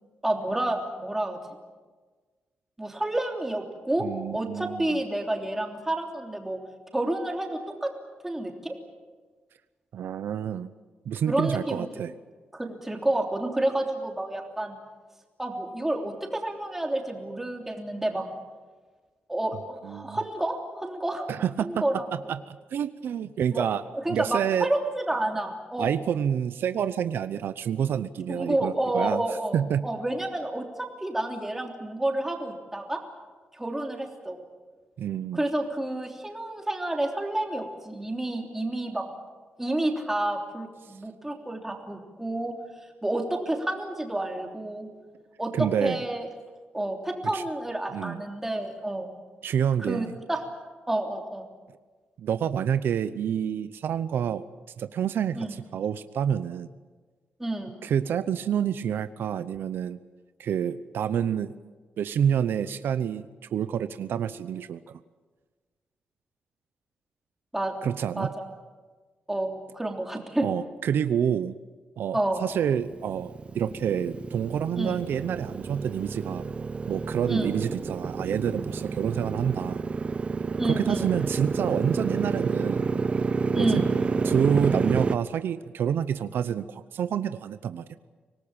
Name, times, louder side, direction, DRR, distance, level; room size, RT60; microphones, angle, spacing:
voice 1, 0.2-1.4 2.8-4.1 4.3-6.6 6.9-7.9 8.2-8.7 11.3-11.9 12.5-14.8 15.4-18.3 19.3-21.3 21.6-22.0 23.5-23.7 23.9-25.9 28.3-33.0 33.5-34.4 35.3-39.0 39.6-42.5 43.0-44.9 45.4-46.3 46.7-49.1 49.8-50.4 50.9-51.5 55.3-55.6 57.4-57.8 67.5-67.7 68.2-68.5 69.3-70.5 72.1-72.4 74.8-75.0 77.3-77.5 80.6-81.1 83.5-83.9, right 1 dB, 10° right, 3 dB, 3.2 m, -29 dB
voice 2, 4.0-5.0 9.9-10.7 11.1-12.1 19.8-20.2 21.3-23.8 24.1-24.7 25.8-29.2 29.5-29.8 35.0-35.4 45.5-46.0 47.3-47.4 47.9-48.2 49.4-50.1 52.2-54.4 54.8-56.7 57.8-60.0 60.4-61.5 62.0-65.0 67.8-68.3 70.4-71.5 72.0-76.4 76.9-79.8 80.6-82.9 83.5-83.8 84.2-88.0, right 8 dB, 75° right, 13 dB, 0.8 m, -28 dB
Motorcycle, 72.5-85.2, right 4 dB, 30° right, 0.6 m, -29 dB
25.0 x 18.5 x 8.9 m, 1.4 s
wide cardioid pair, 145°, 4 cm